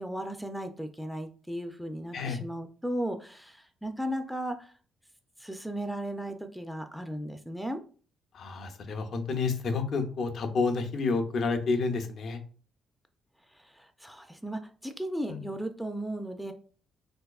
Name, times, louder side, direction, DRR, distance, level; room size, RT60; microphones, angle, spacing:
voice 1, 0.0-4.7 5.4-7.8 13.5-16.5, right 1 dB, ahead, 6 dB, 0.4 m, -36 dB
voice 2, 8.3-12.4 15.3-15.4, left 4 dB, 65° left, 6 dB, 0.6 m, -29 dB
3.5 x 2.8 x 2.3 m, 0.40 s
cardioid pair, 90°, 0 cm